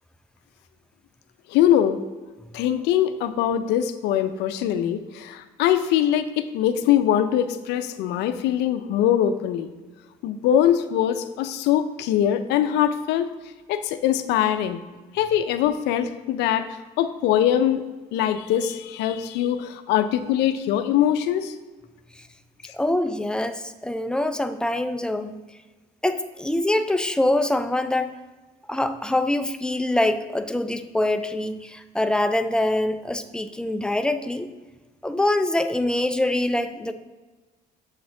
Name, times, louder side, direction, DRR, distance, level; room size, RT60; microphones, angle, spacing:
voice 1, 1.5-2.0 2.5-9.7 10.2-13.3 13.7-14.8 15.1-16.7 17.0-17.8 18.1-21.5 22.6-22.7, left 10 dB, 85° left, 9 dB, 0.5 m, -22 dB
voice 2, 22.7-25.4 26.0-28.1 28.7-34.5 35.0-36.9, left 1 dB, 5° left, 8 dB, 0.4 m, -24 dB
6.9 x 4.1 x 3.7 m, 1.3 s
cardioid pair, 110°, 17 cm